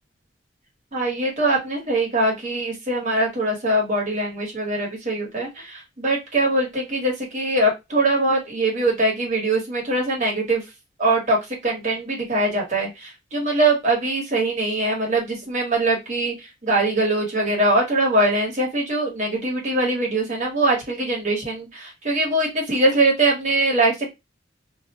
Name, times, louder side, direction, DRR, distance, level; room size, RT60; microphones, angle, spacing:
voice 1, 0.9-10.6 11.0-11.4 11.6-24.1, right 2 dB, 40° right, -2 dB, 1.2 m, -22 dB
2.5 x 2.1 x 2.8 m, 0.22 s
head